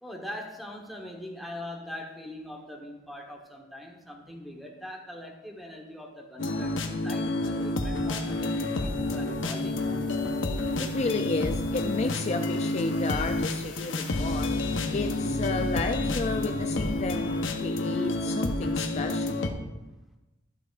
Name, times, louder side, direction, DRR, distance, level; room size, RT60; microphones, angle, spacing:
voice 1, 0.0-9.8, left 1 dB, ahead, 0 dB, 1.1 m, -42 dB
sound 1, 6.4-19.5, left 2 dB, 80° left, 0.8 m, -29 dB
voice 2, 10.8-14.5 14.9-19.4, left 3 dB, 35° left, 5 dB, 0.4 m, -32 dB
12.0 x 8.5 x 2.5 m, 1.1 s
head